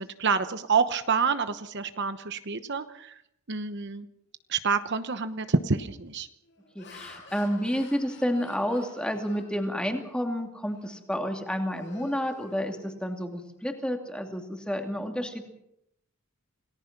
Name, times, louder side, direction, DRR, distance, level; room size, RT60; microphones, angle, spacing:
voice 1, 0.0-3.2 3.5-4.1 4.5-6.3, right 5 dB, 55° right, 10 dB, 1.0 m, -28 dB
Laughter, 5.5-5.8 6.4-10.2 10.7-10.9 11.3-13.2, left 3 dB, 55° left, 6.4 m, -51 dB
voice 2, 6.7-15.5, equal, 5° left, 4 dB, 2.6 m, -30 dB
28.0 x 18.5 x 6.0 m, 0.79 s
head